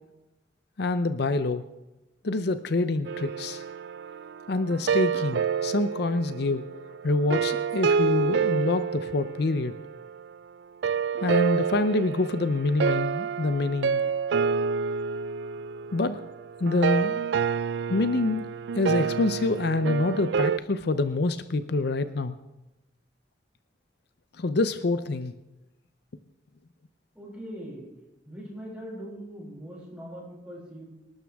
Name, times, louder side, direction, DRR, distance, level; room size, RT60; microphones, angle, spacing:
voice 1, 0.8-1.7 2.2-3.6 4.5-6.6 7.0-9.7 11.2-14.0 15.9-16.2 16.6-17.2 17.9-18.4 18.8-22.4 24.4-25.3, left 2 dB, 65° left, 11 dB, 0.6 m, -26 dB
sound 1, 3.1-10.2 10.8-20.6, right 6 dB, 70° right, 0.4 m, -28 dB
voice 2, 27.1-27.9 28.3-30.8, equal, 5° right, -6 dB, 7.3 m, -41 dB
25.5 x 12.0 x 3.5 m, 1.0 s
head